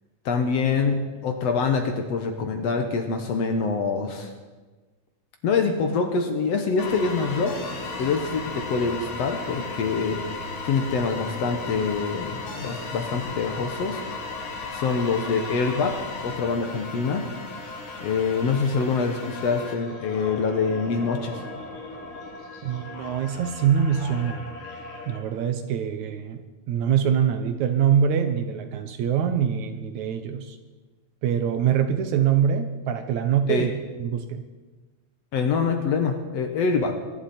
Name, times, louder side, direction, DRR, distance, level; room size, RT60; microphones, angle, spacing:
voice 1, 0.3-4.3 5.4-7.6 8.0-10.2 10.7-14.0 14.7-17.2 18.0-21.5 33.5-33.7 35.3-37.0, left 5 dB, 60° left, 5 dB, 1.9 m, -25 dB
sound 1, 6.8-25.2, left 3 dB, 45° left, 2.2 m, -36 dB
voice 2, 22.6-24.5 25.1-30.6 31.2-33.7 34.0-34.4, right 8 dB, 70° right, 8 dB, 2.1 m, -24 dB
22.5 x 11.5 x 4.3 m, 1.2 s
omnidirectional pair, 3.7 m